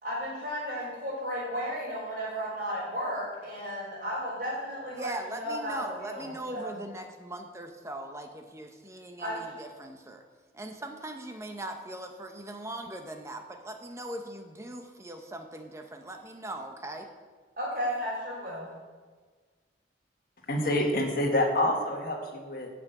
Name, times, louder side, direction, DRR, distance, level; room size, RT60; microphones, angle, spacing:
voice 1, 0.0-6.7 9.2-9.4 17.6-18.7, equal, 50° right, -10 dB, 3.6 m, -34 dB
voice 2, 4.9-10.2 10.5-17.1, right 1 dB, 15° right, 4 dB, 0.9 m, -40 dB
voice 3, 20.5-22.7, left 1 dB, 55° left, 1 dB, 1.6 m, -27 dB
8.6 x 6.1 x 7.9 m, 1.5 s
head